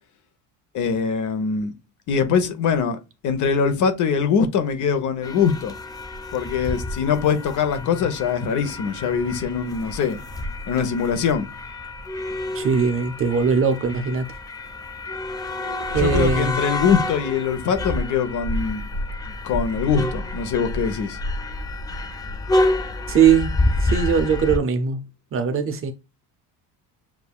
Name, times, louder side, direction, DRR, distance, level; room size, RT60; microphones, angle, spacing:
voice 1, 0.7-1.7 2.1-3.0 3.2-5.7 6.3-10.2 10.7-11.5 15.9-18.9 19.4-21.2, left 6 dB, 50° left, 0.9 m, -22 dB
sound 1, 5.2-24.6, left 2 dB, 10° left, 0.3 m, -28 dB
voice 2, 12.5-14.3 15.9-16.6 23.1-25.9, right 6 dB, 35° right, 0.6 m, -21 dB
7.0 x 2.6 x 2.3 m
cardioid pair, 140°, 39 cm